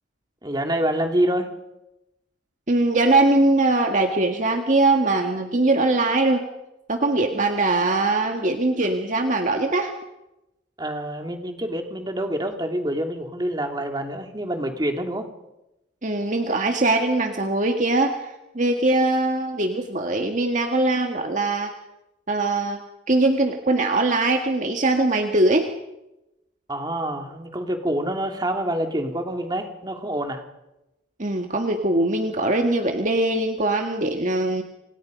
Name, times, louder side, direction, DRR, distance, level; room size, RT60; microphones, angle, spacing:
voice 1, 0.4-1.5 10.8-15.3 26.7-30.4, right 1 dB, 20° right, 4 dB, 2.8 m, -26 dB
voice 2, 2.7-6.4 6.9-9.9 16.0-21.7 22.3-25.7 31.2-34.6, right 2 dB, 40° right, 4 dB, 1.8 m, -21 dB
29.0 x 27.0 x 5.3 m, 0.93 s
head